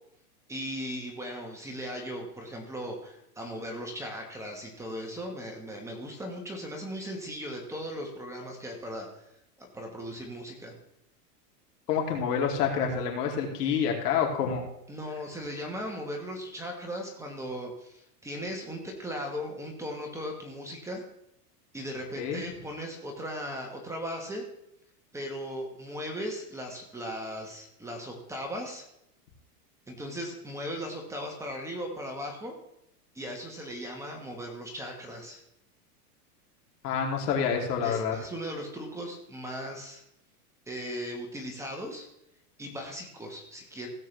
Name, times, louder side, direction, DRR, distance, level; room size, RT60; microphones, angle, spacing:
voice 1, 0.5-9.3 9.6-10.8 14.9-21.0 21.7-24.5 25.1-28.8 29.9-32.5 33.1-35.4 37.8-40.0 40.7-42.1 42.6-43.9, equal, 5° right, 1 dB, 1.3 m, -38 dB
voice 2, 11.9-14.7 22.2-22.5 36.8-38.1, left 7 dB, 75° left, 1 dB, 3.0 m, -28 dB
16.5 x 7.6 x 3.3 m, 0.79 s
supercardioid pair, 155°, 47 cm